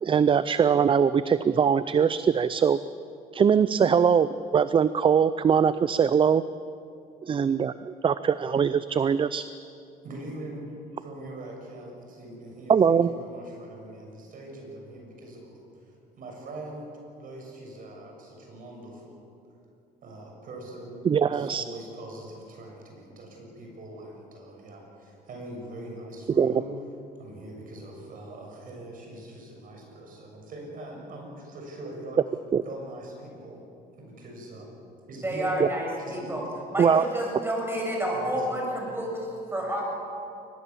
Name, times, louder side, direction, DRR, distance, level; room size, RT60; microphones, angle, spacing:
voice 1, 0.0-2.8 3.3-6.4 7.2-9.4 12.7-13.1 21.0-21.6 26.4-26.5 32.5-32.6 35.6-35.7 36.8-37.0, right 7 dB, 30° right, 15 dB, 0.5 m, -22 dB
voice 2, 10.0-10.7 11.0-15.5 15.8-16.9 17.2-19.2 20.0-26.7 27.2-32.2 32.6-33.6 34.0-35.6 36.0-36.4 38.1-38.6, right 1 dB, 55° right, 1 dB, 7.0 m, -42 dB
voice 3, 35.2-36.4 36.7-39.8, right 1 dB, 15° right, -1 dB, 7.4 m, -30 dB
23.0 x 20.0 x 7.3 m, 2.7 s
cardioid pair, 110°, 17 cm